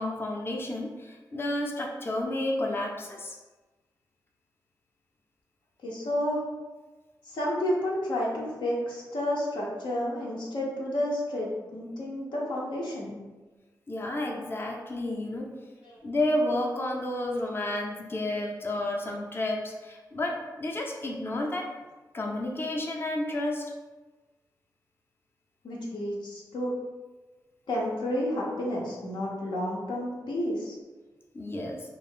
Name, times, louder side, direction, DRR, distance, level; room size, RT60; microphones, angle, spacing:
voice 1, 0.0-3.4 13.9-15.5 16.0-21.7 22.1-23.6 31.3-31.8, left 1 dB, 30° left, 0 dB, 0.5 m, -31 dB
voice 2, 5.8-6.4 7.3-13.2 15.8-16.0 25.6-26.7 27.7-30.8, left 1 dB, 85° left, -4 dB, 0.7 m, -31 dB
2.4 x 2.0 x 3.5 m, 1.2 s
cardioid pair, 50°, 8 cm